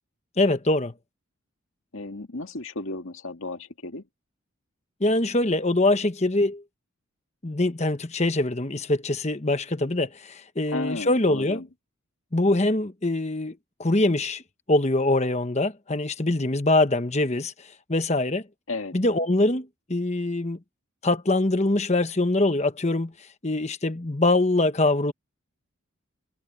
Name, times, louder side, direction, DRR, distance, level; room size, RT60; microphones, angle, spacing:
voice 1, 0.4-0.9 5.0-6.6 7.4-11.6 12.3-14.4 14.7-17.5 17.9-18.4 18.9-20.6 21.0-23.1 23.4-25.1, left 2 dB, 30° left, 1.1 m, -23 dB
voice 2, 1.9-4.0 10.7-11.7 18.7-18.9, left 2 dB, 70° left, 2.0 m, -33 dB
head